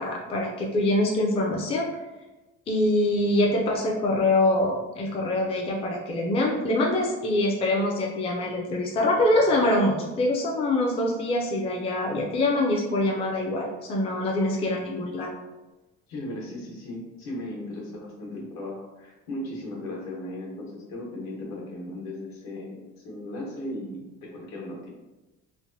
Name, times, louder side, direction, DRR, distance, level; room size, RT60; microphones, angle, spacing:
voice 1, 0.0-1.9 2.7-15.3, left 1 dB, 20° left, -1 dB, 0.4 m, -24 dB
voice 2, 16.1-24.9, left 1 dB, 65° left, -2 dB, 1.1 m, -37 dB
3.2 x 2.1 x 2.6 m, 1.1 s
cardioid pair, 125°, 29 cm